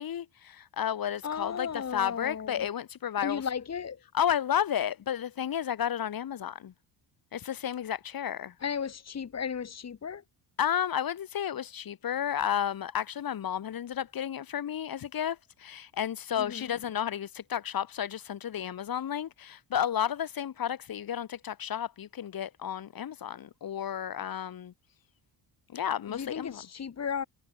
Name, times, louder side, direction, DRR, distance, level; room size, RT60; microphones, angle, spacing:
voice 1, 0.0-3.5 4.1-6.7 7.3-8.5 10.6-24.7 25.7-26.6, left 9 dB, 55° left, 4.0 m, -32 dB
voice 2, 1.2-2.7 3.2-4.0 8.6-10.2 16.4-16.6 26.1-27.2, left 7 dB, 35° left, 3.0 m, -35 dB
cardioid pair, 120°, 42 cm